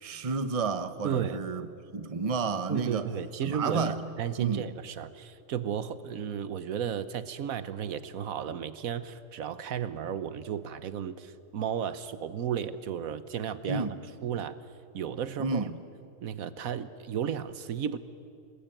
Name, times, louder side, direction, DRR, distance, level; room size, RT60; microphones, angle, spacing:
voice 1, 0.0-1.7 1.9-3.1 3.4-4.0 4.4-4.7 13.7-14.0 15.4-15.8, right 4 dB, 30° right, 11 dB, 0.9 m, -31 dB
voice 2, 1.0-1.4 2.7-13.9 14.2-14.6 14.9-15.7 16.2-18.0, right 8 dB, 80° right, 14 dB, 1.3 m, -33 dB
26.5 x 21.0 x 9.0 m, 2.5 s
omnidirectional pair, 1.5 m